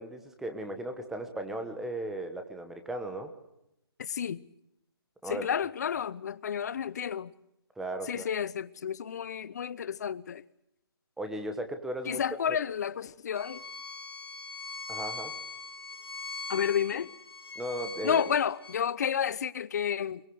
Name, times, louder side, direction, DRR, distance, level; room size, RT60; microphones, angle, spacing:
voice 1, 0.0-3.3 5.2-5.5 7.8-8.3 11.2-12.2 12.5-12.6 14.9-15.3 17.6-18.2, right 1 dB, 5° right, 1.2 m, -36 dB
voice 2, 4.0-4.4 5.2-7.3 8.0-10.4 12.0-13.6 16.5-17.1 18.0-20.2, left 8 dB, 40° left, 0.8 m, -31 dB
Bowed string instrument, 13.3-18.8, left 4 dB, 70° left, 4.1 m, -41 dB
22.0 x 21.5 x 7.8 m
hypercardioid pair, 160°, 13 cm